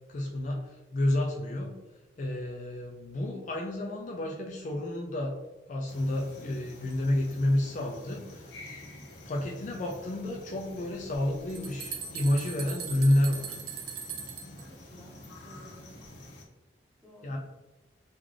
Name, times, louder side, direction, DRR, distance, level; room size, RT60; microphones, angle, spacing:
voice 1, 0.1-1.7 2.2-5.4 5.7-8.6 9.3-13.6 17.2-17.4, left 1 dB, 45° left, 0 dB, 0.4 m, -30 dB
sound 1, 5.9-16.4, left 1 dB, 90° left, 0.8 m, -48 dB
sound 2, 11.1-11.2 11.5-14.6, right 7 dB, 60° right, 0.6 m, -39 dB
voice 2, 14.5-15.8 17.0-17.4, left 1 dB, 5° right, -5 dB, 0.9 m, -54 dB
3.7 x 2.4 x 3.2 m, 1.1 s
head